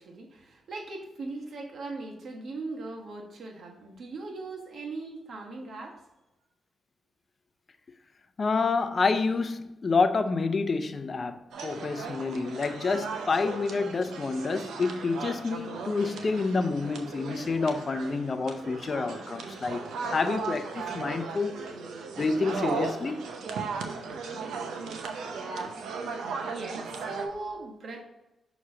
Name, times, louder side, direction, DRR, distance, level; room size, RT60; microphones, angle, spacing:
voice 1, 0.0-6.0 8.8-9.0 26.4-28.0, right 3 dB, 65° right, 1.3 m, -39 dB
voice 2, 8.4-19.8 20.1-21.6 22.2-23.3 23.6-23.7 24.4-24.5 24.8-24.9 25.2-25.7, left 4 dB, 50° left, 0.5 m, -28 dB
sound 1, 11.5-27.3, right 5 dB, 80° right, 0.7 m, -37 dB
6.1 x 3.1 x 5.6 m
supercardioid pair, 50°, 0 cm